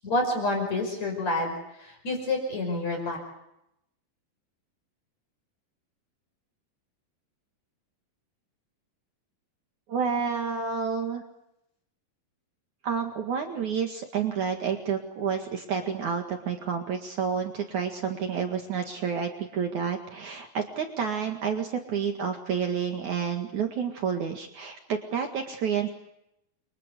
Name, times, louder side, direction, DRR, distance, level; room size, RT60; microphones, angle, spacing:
voice 1, 0.0-3.2, left 2 dB, 50° left, 3 dB, 6.6 m, -28 dB
voice 2, 9.9-11.2 12.8-25.9, right 6 dB, 60° right, 4 dB, 3.2 m, -29 dB
29.5 x 24.5 x 8.3 m, 0.83 s
omnidirectional pair, 4.1 m